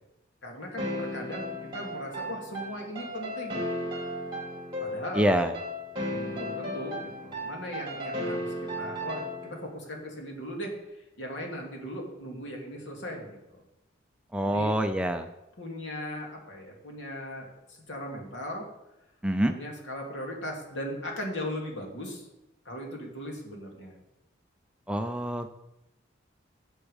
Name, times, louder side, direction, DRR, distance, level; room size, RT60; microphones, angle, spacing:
voice 1, 0.4-3.6 4.8-5.3 6.0-13.6 14.4-14.7 15.6-18.7 19.5-22.3 22.6-23.9, left 1 dB, 70° left, 0 dB, 2.7 m, -38 dB
sound 1, 0.8-9.7, equal, 25° right, 2.6 m, -35 dB
voice 2, 5.2-5.5 14.3-15.3 19.2-19.5 24.9-25.5, right 1 dB, 5° right, 6 dB, 0.5 m, -26 dB
8.4 x 8.0 x 7.1 m, 0.92 s
head